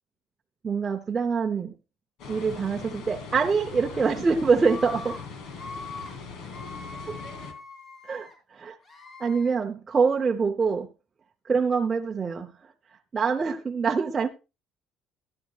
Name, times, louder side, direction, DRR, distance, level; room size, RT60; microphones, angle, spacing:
voice 1, 0.6-1.7 2.3-5.2 7.1-7.2 8.0-8.8 9.2-10.9 11.5-12.5 13.1-14.3, right 5 dB, 20° right, 0.8 m, -25 dB
sound 1, 2.2-7.5, left 5 dB, 65° left, 2.6 m, -40 dB
Screaming, 3.4-4.0 4.6-5.2 5.5-6.1 6.5-8.3 8.8-9.5, left 4 dB, 35° left, 4.1 m, -42 dB
15.5 x 11.5 x 2.4 m
cardioid pair, 150°, 0 cm